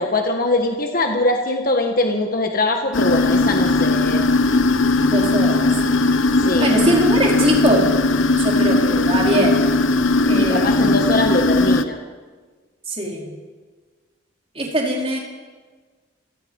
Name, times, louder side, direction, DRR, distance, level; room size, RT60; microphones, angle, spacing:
voice 1, 0.0-4.2 6.4-6.9 10.3-12.0, left 2 dB, 45° left, 3 dB, 1.7 m, -22 dB
sound 1, 2.9-11.8, left 2 dB, 85° left, 1.0 m, -18 dB
voice 2, 5.1-5.7 6.6-7.9 8.4-9.6 10.2-10.9 12.9-13.3 14.5-15.2, right 1 dB, 30° right, -1 dB, 4.6 m, -21 dB
28.5 x 19.0 x 5.5 m, 1.4 s
head